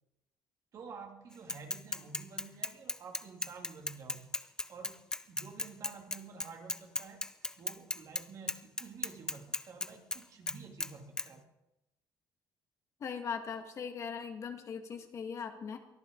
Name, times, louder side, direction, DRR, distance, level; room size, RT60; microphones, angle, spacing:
voice 1, 0.7-4.3 4.7-5.0 5.3-7.2 7.6-11.4, right 5 dB, 45° right, 2 dB, 2.6 m, -50 dB
Bicycle / Mechanisms, 1.5-8.2 8.5-10.2 10.5-10.9 11.2-11.3, left 2 dB, 10° left, 0.6 m, -36 dB
voice 2, 13.0-15.8, left 6 dB, 40° left, 5 dB, 1.8 m, -39 dB
23.0 x 14.0 x 4.0 m, 0.91 s
cardioid pair, 145°, 8 cm